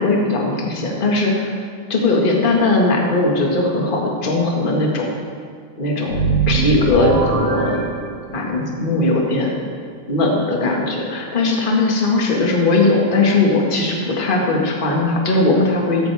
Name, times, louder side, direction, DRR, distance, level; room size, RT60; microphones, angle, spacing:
voice 1, 0.0-1.5 1.9-5.1 5.8-7.8 8.3-9.6 10.1-16.1, left 2 dB, 20° left, -1 dB, 1.4 m, -19 dB
sound 1, 6.1-8.6, right 4 dB, 55° right, 2.7 m, -21 dB
15.5 x 13.5 x 3.6 m, 2.1 s
omnidirectional pair, 3.5 m